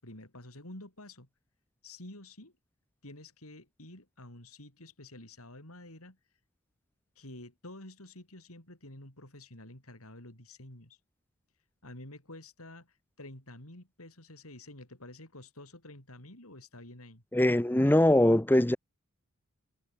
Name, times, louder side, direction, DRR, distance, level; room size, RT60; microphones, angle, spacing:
voice 1, 0.0-1.3 1.8-2.5 3.0-6.2 7.2-11.0 11.8-17.2, left 1 dB, 75° left, 7.2 m, -49 dB
voice 2, 17.3-18.8, left 1 dB, 10° left, 0.7 m, -22 dB
head